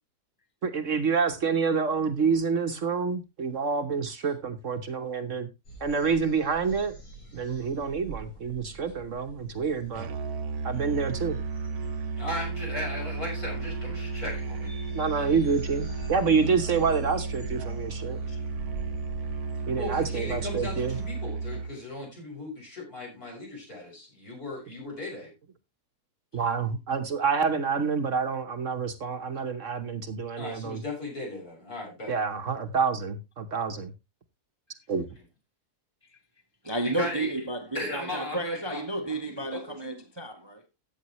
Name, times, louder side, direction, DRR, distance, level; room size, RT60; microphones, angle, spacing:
voice 1, 0.6-5.5 5.8-6.9 7.3-10.1 10.6-11.4 14.9-18.2 19.7-21.0 26.3-30.8 32.1-33.9 34.9-35.0, right 5 dB, 55° right, 1.3 m, -27 dB
sound 1, 5.6-21.1, right 3 dB, 80° left, 5.3 m, -45 dB
Musical instrument, 9.9-21.8, right 4 dB, 70° right, 1.3 m, -33 dB
voice 2, 12.2-14.7 15.2-15.3 19.8-25.3 30.4-32.2 36.9-37.3 37.7-38.8 39.3-40.0, left 1 dB, 65° left, 6.9 m, -37 dB
voice 3, 36.6-40.6, right 2 dB, 20° right, 1.0 m, -32 dB
14.0 x 8.6 x 3.0 m
omnidirectional pair, 1.7 m